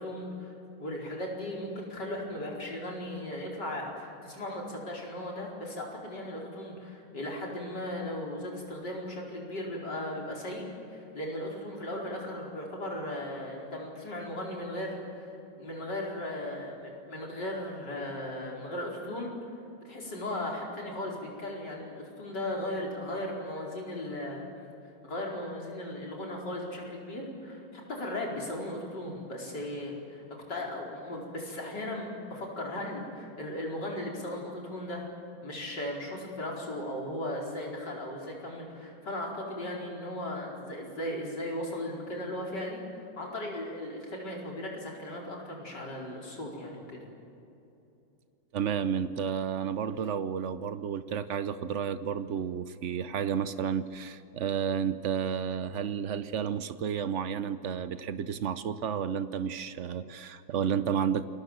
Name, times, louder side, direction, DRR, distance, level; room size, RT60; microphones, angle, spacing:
voice 1, 0.0-19.3 19.8-24.5 25.0-35.1 35.4-42.8 43.2-47.0, left 1 dB, 55° left, -2 dB, 5.4 m, -37 dB
voice 2, 48.5-61.2, right 8 dB, 75° right, 12 dB, 0.6 m, -31 dB
28.5 x 21.5 x 7.6 m, 2.8 s
omnidirectional pair, 2.3 m